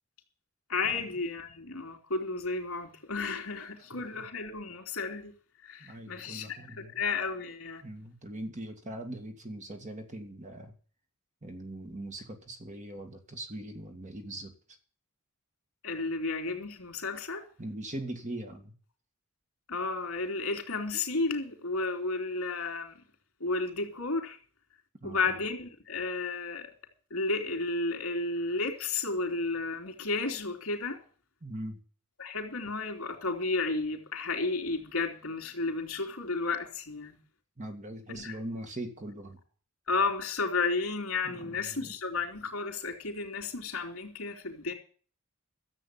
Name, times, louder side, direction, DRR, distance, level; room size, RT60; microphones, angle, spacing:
voice 1, 0.7-5.3 5.6-7.9 15.8-17.5 19.7-23.0 23.4-24.4 25.0-26.7 27.1-31.0 32.2-37.2 38.1-38.4 39.9-44.7, left 3 dB, 70° left, 3.4 m, -32 dB
voice 2, 3.9-4.2 5.8-7.0 7.8-10.7 11.4-14.5 17.6-18.7 25.0-25.4 31.4-31.8 37.6-39.4 41.3-41.4 41.7-41.9, right 1 dB, 35° right, 2.0 m, -41 dB
14.0 x 7.7 x 8.6 m
head